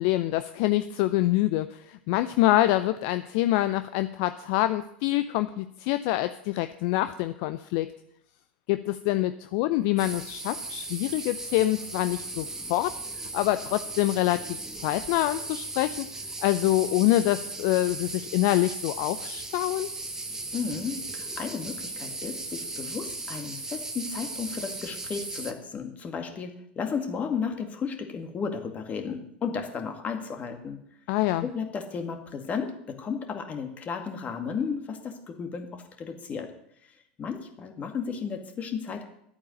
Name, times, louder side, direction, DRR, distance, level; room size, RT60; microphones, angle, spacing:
voice 1, 0.0-7.9 8.7-12.9 13.3-16.1 16.4-19.9 31.1-31.5, left 15 dB, 55° left, 12 dB, 0.5 m, -26 dB
sound 1, 10.0-25.5, right 3 dB, 10° right, 1.3 m, -37 dB
voice 2, 20.5-30.8 31.4-36.5 37.2-39.1, left 6 dB, 30° left, 5 dB, 2.1 m, -34 dB
11.5 x 8.6 x 6.4 m, 0.73 s
figure-of-eight pair, 80°, 5 cm